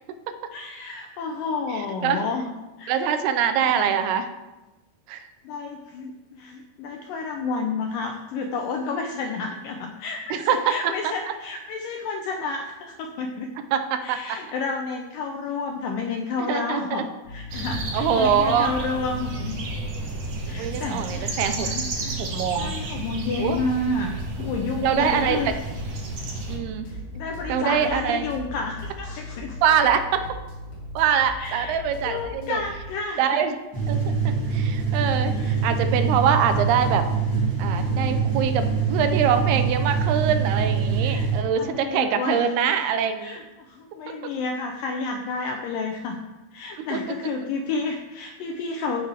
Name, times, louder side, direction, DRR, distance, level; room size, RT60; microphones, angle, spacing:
voice 1, 0.5-2.5 2.8-3.0 3.7-3.9 5.5-13.5 14.0-19.6 20.5-22.2 22.6-25.6 26.9-29.6 31.4-33.4 35.3-35.6 41.0-41.3 41.6-42.5 43.2-46.2 46.5-49.1, left 4 dB, 80° left, 3 dB, 2.0 m, -30 dB
voice 2, 1.7-2.2 2.9-4.3 5.1-5.3 10.3-11.1 13.7-14.4 16.4-17.0 17.9-18.7 20.6-21.7 22.2-22.7 23.4-23.6 24.8-25.6 26.5-26.9 27.5-28.3 29.6-30.2 31.0-32.6 33.2-33.5 33.9-37.1 37.6-43.4 44.1-44.3 46.8-47.0, right 8 dB, 80° right, 8 dB, 2.6 m, -24 dB
sound 1, 17.2-32.9, left 1 dB, 55° left, 5.0 m, -38 dB
sound 2, 17.5-26.6, right 3 dB, 60° right, 1.6 m, -32 dB
sound 3, 33.7-41.4, right 5 dB, 30° right, 2.0 m, -24 dB
14.5 x 6.7 x 3.3 m, 1.1 s
omnidirectional pair, 4.6 m